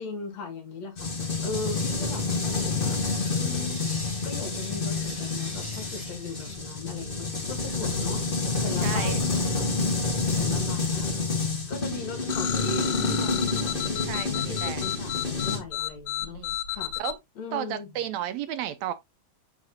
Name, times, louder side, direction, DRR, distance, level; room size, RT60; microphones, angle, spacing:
voice 1, 0.0-3.0 3.4-4.0 4.2-8.2 8.6-9.7 10.4-11.1 11.7-16.9 17.4-18.0, left 4 dB, 65° left, 2.9 m, -38 dB
sound 1, 1.0-15.6, left 3 dB, 40° left, 0.8 m, -28 dB
sound 2, 1.5-6.6, equal, 5° left, 4.3 m, -45 dB
voice 2, 8.8-9.2 14.1-14.9 16.2-16.6 17.0-17.2 17.5-18.9, right 11 dB, 75° right, 1.8 m, -33 dB
sound 3, 12.3-17.1, left 13 dB, 85° left, 2.1 m, -32 dB
6.3 x 5.7 x 2.7 m
omnidirectional pair, 3.3 m